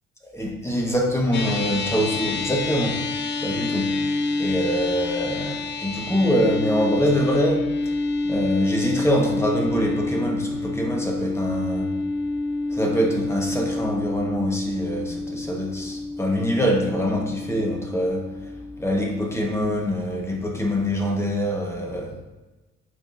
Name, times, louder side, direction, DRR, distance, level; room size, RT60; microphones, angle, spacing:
voice 1, 0.2-3.0 3.4-3.9 4.4-7.7 8.2-11.9 12.7-18.5 18.8-22.2, equal, 10° left, 0 dB, 1.3 m, -24 dB
sound 1, 1.3-19.9, left 2 dB, 35° left, 0.6 m, -28 dB
8.7 x 4.6 x 2.6 m, 1.1 s
cardioid pair, 90°, 30 cm